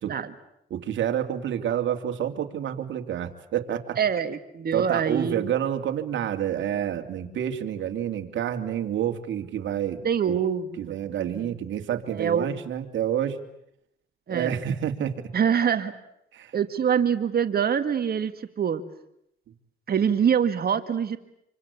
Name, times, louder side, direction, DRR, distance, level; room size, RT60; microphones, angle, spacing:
voice 1, 0.7-4.0 4.7-10.0 10.3-10.4 10.8-13.4 14.3-15.1 16.3-16.5, right 10 dB, 70° right, 6 dB, 2.8 m, -28 dB
voice 2, 4.0-5.5 10.0-11.5 12.1-12.5 14.3-14.6 15.3-15.9 16.5-18.8 19.9-21.2, right 7 dB, 50° right, 9 dB, 2.0 m, -25 dB
27.5 x 25.0 x 8.4 m, 0.77 s
cardioid pair, 90°, 20 cm